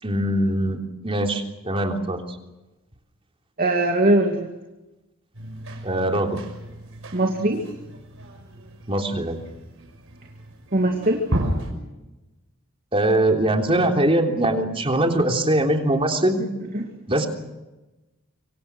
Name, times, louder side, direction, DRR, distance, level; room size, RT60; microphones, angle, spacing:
voice 1, 0.0-2.2 5.8-6.4 8.9-9.4 12.9-16.4 17.1-17.3, right 1 dB, 25° right, 3 dB, 3.4 m, -22 dB
voice 2, 3.6-4.5 7.1-7.6 10.7-11.3 16.7-16.9, right 1 dB, 40° right, 3 dB, 2.5 m, -21 dB
sound 1, 5.3-11.7, right 1 dB, 65° right, 5.6 m, -33 dB
25.5 x 25.0 x 6.3 m, 1.0 s
head